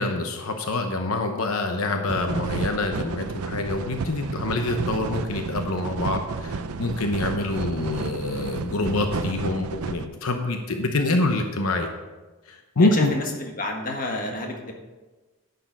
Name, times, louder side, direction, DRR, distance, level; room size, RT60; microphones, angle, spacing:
voice 1, 0.0-11.9 12.5-13.1, left 2 dB, 80° left, 5 dB, 0.9 m, -26 dB
sound 1, 2.1-10.1, right 4 dB, 90° right, 0.5 m, -31 dB
voice 2, 12.8-14.7, left 2 dB, 40° left, 2 dB, 1.5 m, -30 dB
10.0 x 6.8 x 5.3 m, 1.2 s
head